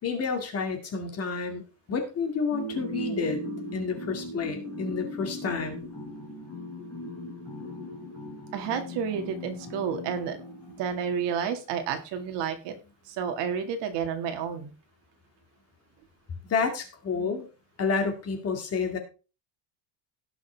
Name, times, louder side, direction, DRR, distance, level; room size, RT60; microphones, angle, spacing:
voice 1, 0.0-1.6 1.9-3.4 3.7-5.8 16.4-17.5 17.8-19.0, left 5 dB, 30° left, 5 dB, 2.2 m, -29 dB
sound 1, 2.5-11.3, equal, 5° left, 3.4 m, -38 dB
voice 2, 8.5-10.5 10.8-12.7 13.0-14.7, right 7 dB, 55° right, 6 dB, 2.1 m, -30 dB
17.5 x 6.3 x 3.4 m, 0.32 s
cardioid pair, 170°, 49 cm